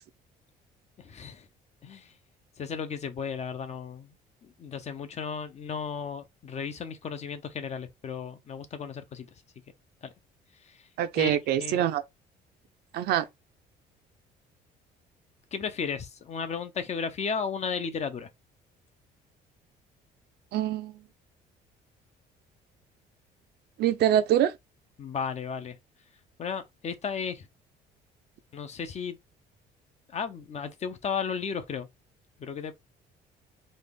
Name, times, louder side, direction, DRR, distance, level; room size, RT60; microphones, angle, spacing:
voice 1, 1.0-1.5 1.8-2.1 2.6-4.1 4.4-9.3 10.0-10.1 11.1-11.3 11.6-11.8 15.5-18.3 25.0-25.8 26.4-27.5 28.5-29.2 30.1-31.9 32.4-32.7, left 6 dB, 40° left, 0.8 m, -34 dB
voice 2, 11.0-12.0 12.9-13.3 20.5-20.9 23.8-24.5, right 11 dB, 70° right, 0.6 m, -24 dB
4.2 x 2.4 x 3.4 m
cardioid pair, 110°, 17 cm